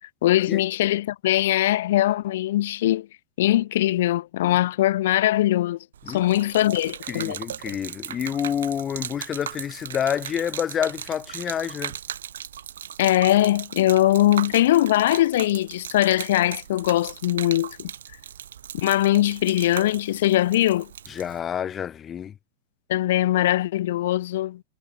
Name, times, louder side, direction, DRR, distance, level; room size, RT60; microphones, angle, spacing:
voice 1, 0.2-3.1 3.4-5.8 6.1-7.4 13.0-17.9 18.7-20.9 22.9-24.6, left 14 dB, 55° left, 0.5 m, -21 dB
Gurgling / Liquid, 5.9-21.4, right 9 dB, 65° right, 3.3 m, -38 dB
voice 2, 7.1-12.0 21.1-22.3, left 9 dB, 25° left, 1.0 m, -28 dB
figure-of-eight pair, 90°, 0 cm